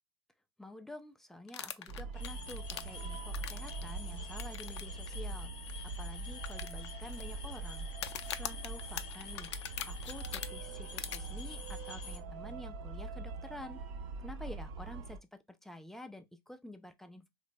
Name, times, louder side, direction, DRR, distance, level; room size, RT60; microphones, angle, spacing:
voice 1, 0.6-7.9 8.3-9.5 9.8-13.8 14.2-17.3, left 1 dB, ahead, 0.4 m, -49 dB
sound 1, 1.5-3.8 4.4-4.8 5.1-5.2 5.7-5.8 6.4-7.2 7.9-10.5 11.0-11.2, left 10 dB, 70° left, 0.4 m, -41 dB
sound 2, 1.9-15.2, right 3 dB, 45° right, 0.6 m, -43 dB
sound 3, 2.1-12.2, left 6 dB, 35° left, 0.7 m, -49 dB
3.1 x 2.0 x 3.3 m
hypercardioid pair, 105°, 15 cm